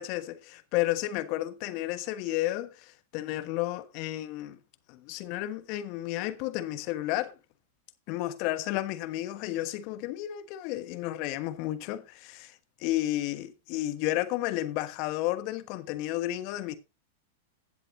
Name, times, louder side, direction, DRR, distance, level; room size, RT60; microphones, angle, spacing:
voice 1, 0.0-4.6 4.9-7.3 8.1-12.5 12.8-16.8, left 15 dB, 50° left, 1.3 m, -32 dB
16.0 x 7.6 x 2.7 m
hypercardioid pair, 105°, 0 cm